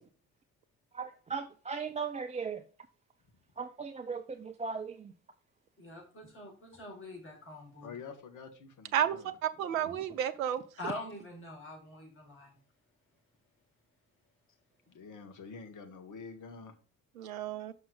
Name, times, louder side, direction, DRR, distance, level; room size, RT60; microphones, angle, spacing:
voice 1, 0.9-2.6 3.6-5.1, right 5 dB, 15° right, 0.5 m, -38 dB
voice 2, 5.8-7.9 9.8-10.0 10.8-12.5, left 2 dB, 30° left, 5.1 m, -44 dB
voice 3, 7.8-9.3 14.9-16.7, left 5 dB, 45° left, 1.6 m, -47 dB
voice 4, 8.9-10.6 17.2-17.7, right 10 dB, 75° right, 0.7 m, -32 dB
6.3 x 6.0 x 5.0 m
figure-of-eight pair, 50°, 41 cm